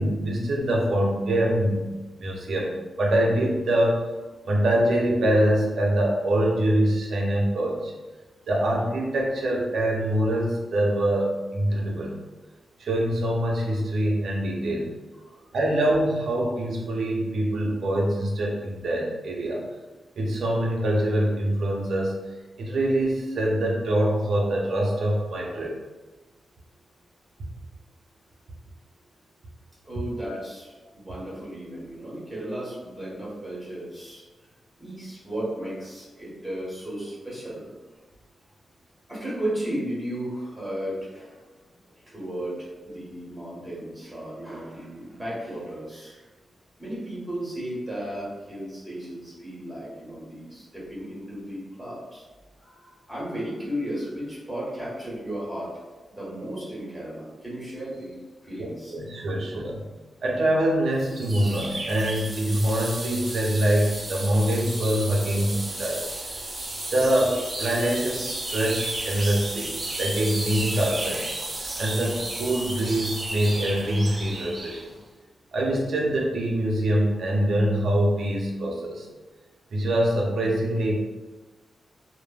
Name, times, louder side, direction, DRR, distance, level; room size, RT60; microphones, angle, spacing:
voice 1, 0.0-1.9 2.2-4.1 4.5-7.9 8.5-12.2 12.8-14.9 15.5-19.7 20.2-22.2 22.6-25.7 42.8-42.9 58.6-59.8 60.2-66.0 66.9-71.2 71.8-74.9 75.5-79.1 79.7-80.9, right 1 dB, 75° right, -1 dB, 0.6 m, -24 dB
voice 2, 15.2-15.5 29.8-34.2 34.8-37.7 39.1-41.4 42.1-46.2 46.8-52.2 52.6-55.7 56.1-59.2, right 1 dB, 10° right, -7 dB, 1.4 m, -35 dB
sound 1, 61.0-74.8, right 2 dB, 35° right, 0.5 m, -33 dB
3.2 x 2.1 x 2.3 m, 1.2 s
wide cardioid pair, 110°, 0 cm